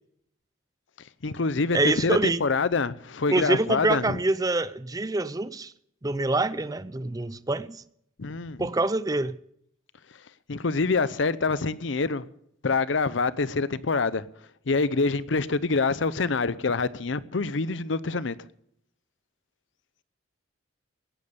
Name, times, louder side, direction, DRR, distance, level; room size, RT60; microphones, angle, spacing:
voice 1, 1.2-4.2 8.2-8.7 10.5-12.3 12.6-14.2 14.7-18.4, left 4 dB, 65° left, 0.7 m, -26 dB
voice 2, 1.7-2.4 3.3-5.7 6.0-7.8 8.6-9.4, right 2 dB, 20° right, 0.5 m, -26 dB
17.5 x 11.0 x 6.8 m
head